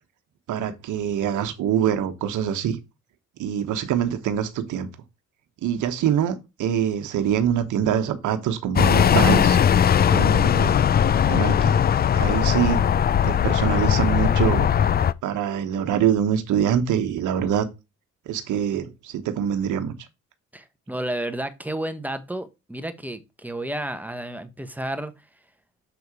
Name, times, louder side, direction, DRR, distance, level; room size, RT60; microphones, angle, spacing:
voice 1, 0.5-2.8 3.4-4.9 5.6-9.6 10.1-10.8 11.3-11.7 12.1-12.8 13.2-14.7 15.2-17.7 18.3-19.9, right 9 dB, 80° right, 1.1 m, -24 dB
sound 1, 8.8-15.1, left 8 dB, 35° left, 0.4 m, -19 dB
voice 2, 20.5-25.1, right 1 dB, 5° right, 1.1 m, -31 dB
7.0 x 3.8 x 4.8 m
cardioid pair, 90°, 30 cm